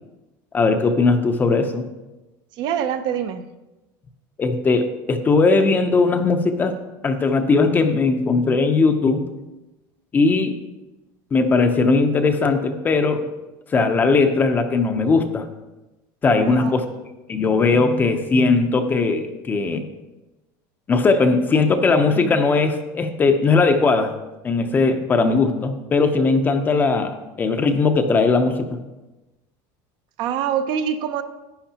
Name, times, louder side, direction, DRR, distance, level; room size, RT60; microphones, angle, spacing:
voice 1, 0.5-1.9 4.4-6.8 7.0-9.3 10.1-10.6 11.3-13.3 13.7-15.5 16.2-16.8 17.3-19.9 20.9-24.1 24.4-28.8, left 4 dB, 20° left, 7 dB, 0.6 m, -19 dB
voice 2, 2.5-3.4 16.4-16.8 30.2-31.2, right 8 dB, 50° right, 9 dB, 0.6 m, -25 dB
11.5 x 9.6 x 2.9 m, 1.1 s
cardioid pair, 160°, 10 cm